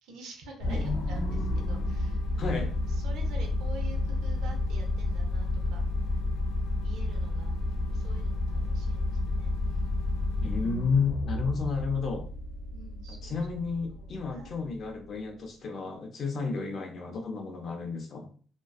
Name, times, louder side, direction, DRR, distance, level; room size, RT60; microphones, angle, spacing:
voice 1, 0.0-5.8 6.8-9.8 12.7-13.4 13.9-14.5 16.4-16.7, right 2 dB, 75° right, 2 dB, 0.5 m, -49 dB
sound 1, 0.6-15.1, left 2 dB, 80° left, 0.6 m, -31 dB
voice 2, 2.4-2.7 10.4-12.3 13.2-18.3, left 5 dB, 40° left, 2 dB, 0.5 m, -31 dB
2.5 x 2.2 x 2.3 m, 0.42 s
cardioid pair, 150°, 0 cm